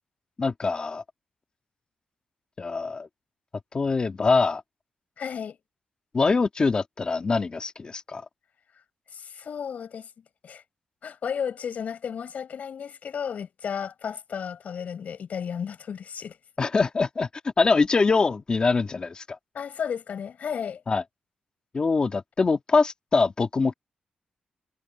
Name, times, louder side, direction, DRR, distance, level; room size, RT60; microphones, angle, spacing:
voice 1, 0.4-1.0 2.6-3.1 3.7-4.6 6.1-8.2 16.6-17.3 17.6-19.4 20.9-21.0 21.7-23.7, left 4 dB, 35° left, 1.8 m, -23 dB
voice 2, 5.2-5.6 9.1-10.1 10.4-10.6 11.0-16.4 19.5-20.8, left 7 dB, 65° left, 5.6 m, -33 dB
wide cardioid pair, 135°, 3 cm